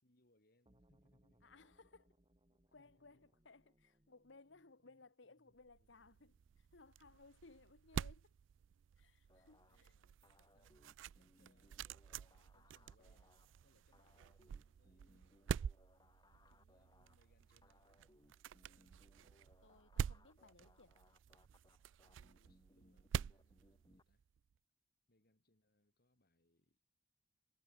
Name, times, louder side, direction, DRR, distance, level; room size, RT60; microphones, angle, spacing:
voice 1, 0.0-1.5 2.5-3.3 9.2-15.6 16.3-18.1 18.5-19.1 22.1-24.3 25.1-26.8, left 1 dB, 55° left, 3.8 m, -78 dB
sound 1, 0.7-7.6, right 1 dB, 25° right, 2.0 m, -76 dB
voice 2, 1.4-2.2 2.7-8.3 9.0-9.9 19.6-20.9, left 3 dB, 75° left, 1.3 m, -63 dB
sound 2, 5.6-24.4, right 7 dB, 85° right, 0.3 m, -48 dB
sound 3, 9.3-24.0, left 1 dB, 20° left, 4.5 m, -71 dB
head